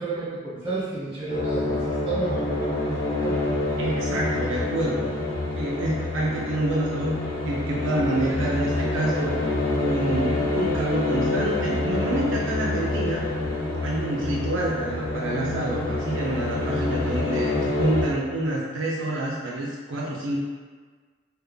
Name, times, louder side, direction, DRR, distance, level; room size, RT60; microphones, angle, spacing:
voice 1, 0.0-3.3, right 3 dB, 25° right, -10 dB, 1.2 m, -32 dB
sound 1, 1.3-18.0, left 2 dB, 45° left, 1.4 m, -27 dB
voice 2, 3.8-5.1 5.5-7.2 7.5-9.4 9.8-13.3 13.8-20.4, right 1 dB, 75° right, -4 dB, 0.5 m, -27 dB
3.4 x 3.3 x 2.3 m, 1.5 s
head